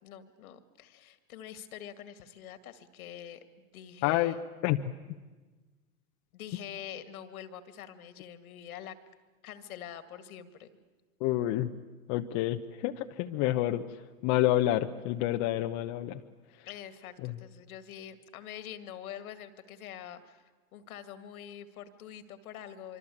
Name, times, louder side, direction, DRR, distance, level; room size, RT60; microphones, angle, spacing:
voice 1, 0.0-4.4 6.3-9.0 9.4-10.7 16.7-23.0, left 10 dB, 65° left, 11 dB, 2.2 m, -45 dB
voice 2, 4.0-4.3 4.6-4.8 11.2-11.7 12.1-16.2 16.6-16.7 17.2-17.3, left 14 dB, 40° left, 6 dB, 0.9 m, -29 dB
24.5 x 24.5 x 8.6 m, 1.3 s
hypercardioid pair, 105°, 46 cm